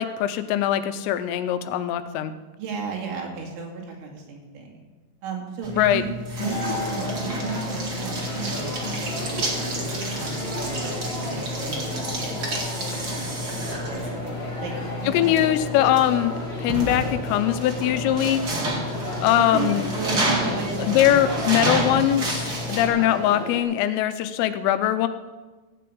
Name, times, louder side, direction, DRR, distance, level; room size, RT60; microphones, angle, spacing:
voice 1, 0.0-2.3 5.7-6.0 15.1-18.4 19.2-19.8 20.8-25.1, left 12 dB, 90° left, 11 dB, 3.4 m, -22 dB
voice 2, 2.6-4.8 5.2-6.1 6.4-7.7 8.0-9.9 10.1-10.4 10.7-12.2 14.6-14.7 15.0-15.3 19.4-22.0, right 5 dB, 75° right, 0 dB, 4.8 m, -34 dB
sound 1, 5.6-22.9, right 1 dB, 45° right, 1.2 m, -30 dB
sound 2, 6.4-23.6, left 1 dB, 15° left, 2.5 m, -33 dB
15.5 x 6.9 x 8.6 m, 1.3 s
omnidirectional pair, 5.7 m